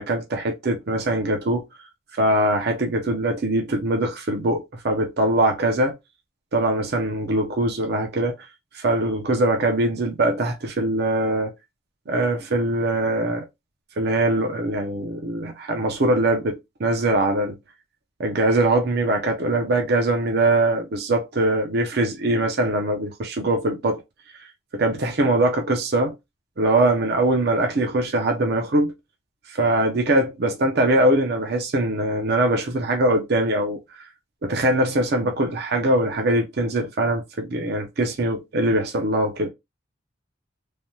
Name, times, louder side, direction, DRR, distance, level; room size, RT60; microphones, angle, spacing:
voice 1, 0.0-1.6 2.1-5.9 6.5-8.3 8.7-11.5 12.1-13.4 14.0-17.6 18.2-24.0 24.7-26.1 26.6-28.9 29.5-34.0 34.4-39.5, right 1 dB, 55° right, 0.6 m, -22 dB
3.3 x 2.1 x 2.7 m
head